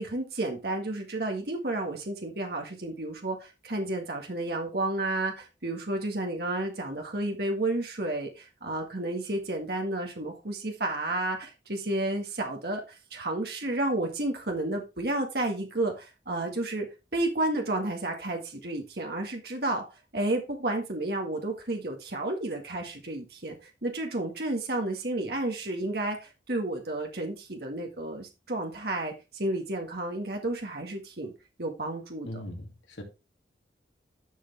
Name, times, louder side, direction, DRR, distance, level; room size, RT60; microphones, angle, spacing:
voice 1, 0.0-16.9 17.1-19.8 20.1-23.6 23.8-31.3 31.6-32.4, right 2 dB, 60° right, 1.9 m, -31 dB
voice 2, 32.2-33.0, left 1 dB, 90° left, 2.5 m, -40 dB
11.5 x 6.2 x 3.5 m
head